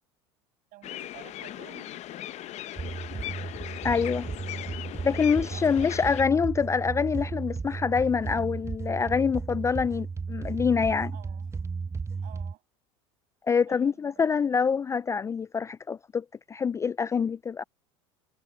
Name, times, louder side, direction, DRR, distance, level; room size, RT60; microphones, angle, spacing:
voice 1, 0.7-2.6 3.7-3.8 4.2-4.4 5.2-5.9 11.1-11.5 12.2-12.6 13.6-14.6, right 18 dB, 55° right, 8.0 m, -52 dB
sound 1, 0.8-6.2, left 14 dB, 45° left, 0.9 m, -39 dB
sound 2, 2.8-12.5, right 5 dB, 15° right, 0.9 m, -34 dB
voice 2, 3.8-4.3 5.0-11.1 13.5-17.6, left 6 dB, 20° left, 0.3 m, -26 dB
hypercardioid pair, 85°, 16 cm